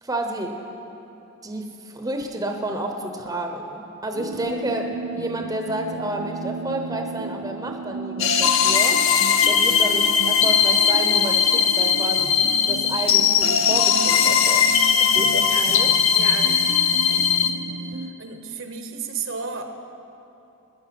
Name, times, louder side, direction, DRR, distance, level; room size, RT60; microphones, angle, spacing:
voice 1, 0.0-0.6 1.4-9.0 9.4-12.4 12.7-14.7 15.0-15.9, right 1 dB, 15° right, 3 dB, 0.9 m, -30 dB
sound 1, 4.1-18.1, right 4 dB, 75° right, 0.7 m, -34 dB
sound 2, 8.2-17.5, left 7 dB, 65° left, 0.9 m, -19 dB
voice 2, 16.1-17.4 18.2-19.9, right 5 dB, 60° right, 6 dB, 1.1 m, -34 dB
17.5 x 10.5 x 6.0 m, 2.9 s
head